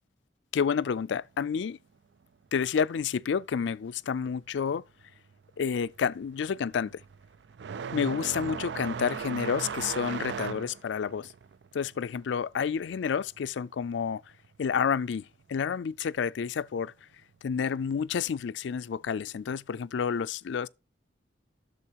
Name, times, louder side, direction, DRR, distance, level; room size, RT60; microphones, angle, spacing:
voice 1, 0.5-1.8 2.5-4.8 5.6-7.0 7.9-11.3 11.7-14.2 14.6-16.9 17.4-20.7, left 6 dB, 75° left, 0.4 m, -29 dB
sound 1, 5.0-5.3 5.6-14.0 14.2-15.3 16.3-16.4 17.2-17.3 19.0-19.2, right 6 dB, 65° right, 0.4 m, -38 dB
12.0 x 6.8 x 2.9 m
head